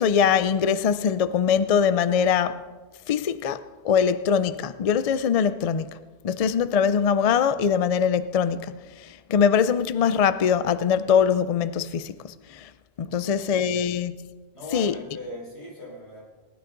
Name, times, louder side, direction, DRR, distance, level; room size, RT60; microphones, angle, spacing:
voice 1, 0.0-2.6 3.1-5.9 6.2-8.7 9.0-12.7 13.0-14.1 14.7-14.9, left 7 dB, 50° left, 0.4 m, -22 dB
voice 2, 14.5-16.2, left 1 dB, 85° left, 5.5 m, -39 dB
19.0 x 11.5 x 3.8 m
omnidirectional pair, 1.1 m